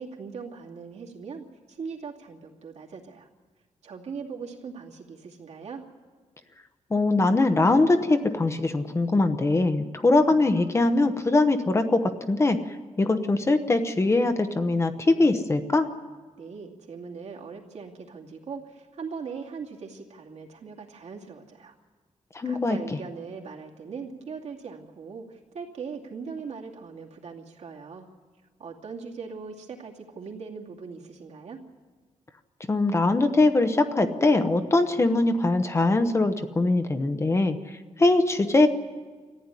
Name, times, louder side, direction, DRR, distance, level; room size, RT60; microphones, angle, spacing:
voice 1, 0.0-3.3 3.8-5.8 16.4-21.7 22.4-28.1 28.6-31.6, right 5 dB, 65° right, -1 dB, 2.6 m, -40 dB
voice 2, 6.9-12.6 13.0-15.9 22.3-23.0 32.7-37.6 38.0-38.7, left 2 dB, 25° left, 8 dB, 1.0 m, -22 dB
23.0 x 14.5 x 9.9 m, 1.5 s
wide cardioid pair, 160°, 12 cm